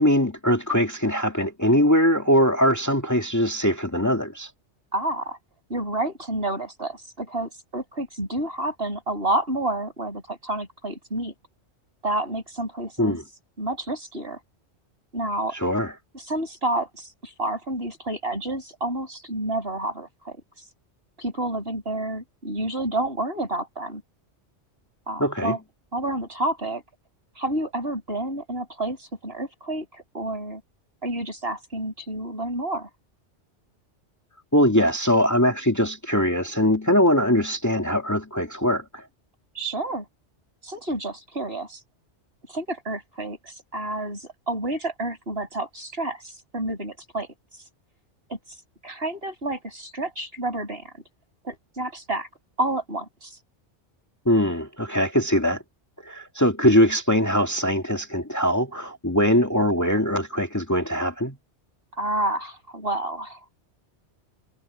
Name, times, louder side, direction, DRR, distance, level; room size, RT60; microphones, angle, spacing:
voice 1, 0.0-4.5 13.0-13.2 15.5-15.9 25.2-25.6 34.5-39.0 54.3-55.6 56.0-61.4, equal, 15° left, 2.0 m, -21 dB
voice 2, 4.9-5.4 5.7-11.3 12.0-13.2 13.6-14.4 15.1-15.6 16.1-20.4 21.2-24.0 25.1-25.6 25.9-26.8 27.4-30.6 31.0-32.9 39.5-40.0 40.6-41.8 42.5-47.6 48.3-48.4 48.8-50.9 51.4-52.3 52.6-53.4 62.0-63.4, right 1 dB, 55° right, 6.8 m, -29 dB
omnidirectional pair, 1.2 m